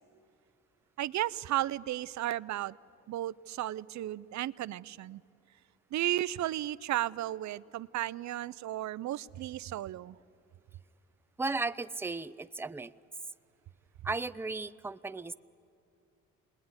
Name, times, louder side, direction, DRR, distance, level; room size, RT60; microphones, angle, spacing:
voice 1, 1.0-2.7 3.1-5.2 5.9-10.2, right 14 dB, 70° right, 18 dB, 0.6 m, -34 dB
voice 2, 11.4-12.9 14.0-15.3, right 3 dB, 10° right, 13 dB, 0.5 m, -35 dB
27.5 x 20.5 x 9.6 m, 2.5 s
cardioid pair, 90°, 30 cm